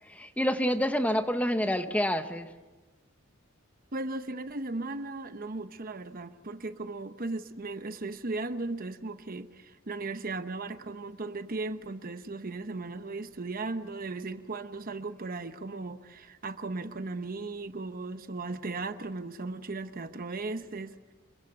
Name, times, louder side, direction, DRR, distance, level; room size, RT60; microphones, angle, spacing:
voice 1, 0.1-2.5, equal, 5° left, 1.0 m, -28 dB
voice 2, 3.9-21.1, right 3 dB, 45° right, 0.9 m, -37 dB
26.5 x 23.0 x 6.9 m
head